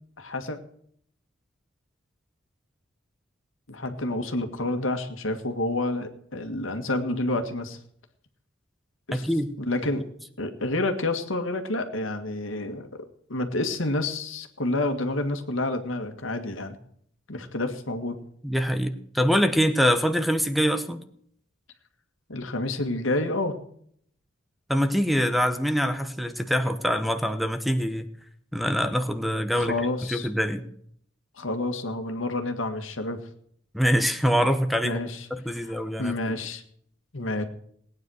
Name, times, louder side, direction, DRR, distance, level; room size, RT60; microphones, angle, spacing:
voice 1, 0.2-0.6 3.7-7.8 9.1-9.3 9.6-10.1 10.4-13.0 13.3-16.8 17.3-18.2 22.3-23.6 29.5-30.3 31.3-33.3 34.8-35.3 35.5-36.6 37.1-37.4, left 2 dB, 75° left, 7 dB, 1.9 m, -29 dB
voice 2, 9.1-9.6 18.4-21.0 24.7-28.1 28.5-29.8 30.1-30.7 33.7-35.0 35.3-36.4, equal, ahead, 9 dB, 0.9 m, -24 dB
18.5 x 9.6 x 6.4 m, 0.65 s
head